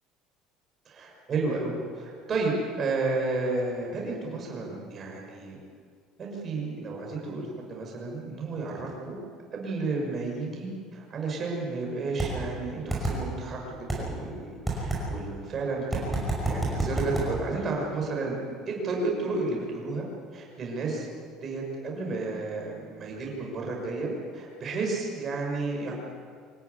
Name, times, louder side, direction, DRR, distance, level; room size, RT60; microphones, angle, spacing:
voice 1, 0.9-5.6 6.2-9.2 9.5-20.0 20.3-21.1 21.3-25.9, right 3 dB, 25° right, -1 dB, 5.8 m, -32 dB
sound 1, 12.2-12.3 12.9-13.2 13.9-14.0 14.7-15.0 15.9-17.3, right 2 dB, ahead, 5.6 m, -27 dB
25.0 x 14.0 x 9.7 m, 2.1 s
cardioid pair, 175°, 0 cm